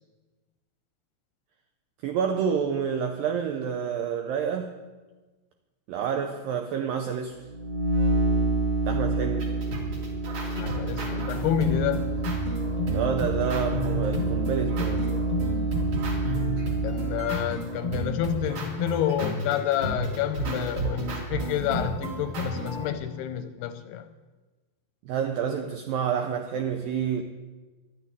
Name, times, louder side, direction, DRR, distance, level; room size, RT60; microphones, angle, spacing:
voice 1, 2.0-4.7 5.9-7.4 8.9-9.6 12.9-15.3 25.1-27.2, right 7 dB, 85° right, 2.0 m, -29 dB
sound 1, 7.4-17.3, right 3 dB, 70° right, 4.8 m, -28 dB
sound 2, 9.4-22.9, right 1 dB, 45° right, 4.6 m, -32 dB
voice 2, 10.6-12.1 16.8-24.1, left 10 dB, 80° left, 2.5 m, -29 dB
12.0 x 9.5 x 9.6 m
omnidirectional pair, 5.1 m